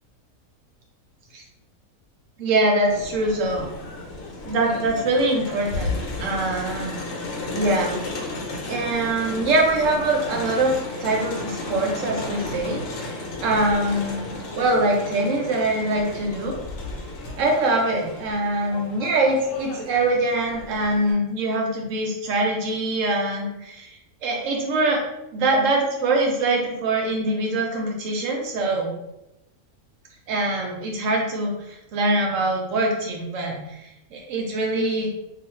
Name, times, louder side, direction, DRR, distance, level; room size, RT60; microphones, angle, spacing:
voice 1, 2.4-3.7 4.4-7.0 7.5-8.0 8.7-10.7 11.0-16.6 17.4-23.9 24.2-25.0 25.3-28.9 30.3-35.2, right 2 dB, 65° right, 0 dB, 0.9 m, -23 dB
Crowd, 2.9-21.1, left 2 dB, 70° left, 1.0 m, -34 dB
2.4 x 2.3 x 3.1 m, 0.90 s
omnidirectional pair, 1.6 m